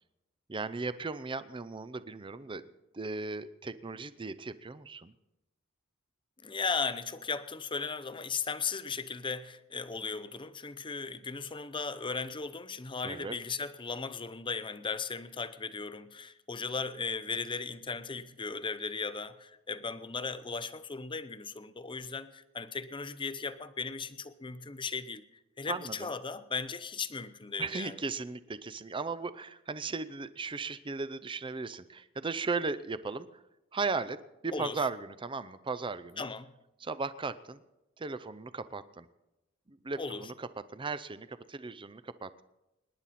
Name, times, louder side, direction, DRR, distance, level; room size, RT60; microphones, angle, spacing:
voice 1, 0.5-2.7 2.9-5.1 13.0-13.3 25.7-26.1 27.6-33.3 33.7-34.2 34.4-36.3 36.8-37.6 38.0-39.1 39.7-42.4, right 4 dB, 25° right, 0.6 m, -36 dB
voice 2, 6.4-25.2 25.6-27.9 34.5-34.8 36.2-36.5 40.0-40.3, left 4 dB, 25° left, 0.7 m, -37 dB
25.5 x 10.5 x 4.2 m
head